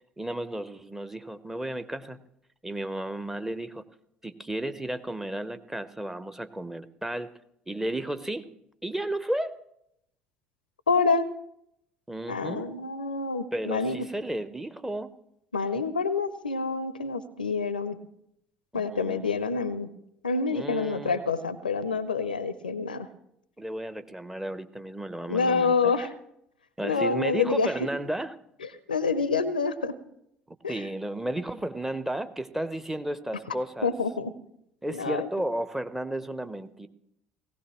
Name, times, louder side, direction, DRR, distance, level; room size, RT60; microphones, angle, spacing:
voice 1, 0.2-2.2 2.6-3.8 4.2-7.3 7.7-8.5 8.8-9.6 12.1-12.7 13.5-15.1 18.7-19.3 20.5-21.2 23.6-25.9 26.8-28.4 30.5-33.9 34.8-36.9, right 1 dB, 5° right, 11 dB, 0.9 m, -33 dB
voice 2, 10.9-11.3 12.3-14.1 15.5-18.0 18.7-19.9 20.2-23.1 25.3-26.1 26.8-27.9 28.9-30.0 30.6-30.8 33.8-34.3 34.9-35.3, left 4 dB, 85° left, 16 dB, 0.5 m, -27 dB
18.5 x 16.5 x 3.1 m, 0.78 s
figure-of-eight pair, 60°, 5 cm